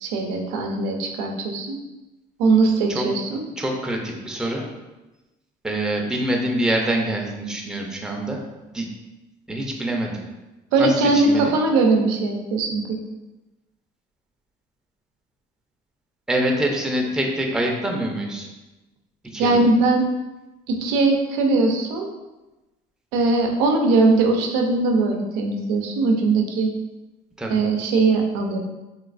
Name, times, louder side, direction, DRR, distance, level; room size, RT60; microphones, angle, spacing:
voice 1, 0.0-1.8 2.4-3.4 10.7-13.0 19.4-20.1 20.7-22.1 23.1-26.7 27.5-28.6, right 3 dB, 90° right, 2 dB, 0.5 m, -20 dB
voice 2, 3.6-4.7 5.6-8.4 8.7-8.9 9.5-10.2 10.8-11.5 16.3-18.5 19.2-19.6 27.4-27.5, right 1 dB, 5° right, 0 dB, 0.5 m, -25 dB
3.2 x 3.0 x 2.5 m, 1.1 s
supercardioid pair, 75°, 20 cm